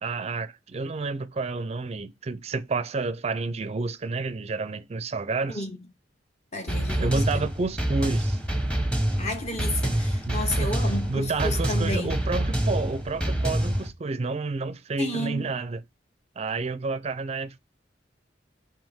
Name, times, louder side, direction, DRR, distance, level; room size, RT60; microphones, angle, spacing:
voice 1, 0.0-5.7 7.0-8.4 10.3-10.7 11.1-15.8 16.4-17.6, right 3 dB, 35° right, 0.4 m, -30 dB
voice 2, 6.5-7.4 9.2-12.2 15.0-15.5, left 1 dB, 40° left, 1.2 m, -32 dB
sound 1, 6.7-13.9, right 1 dB, 5° left, 1.0 m, -26 dB
6.1 x 4.8 x 3.6 m
head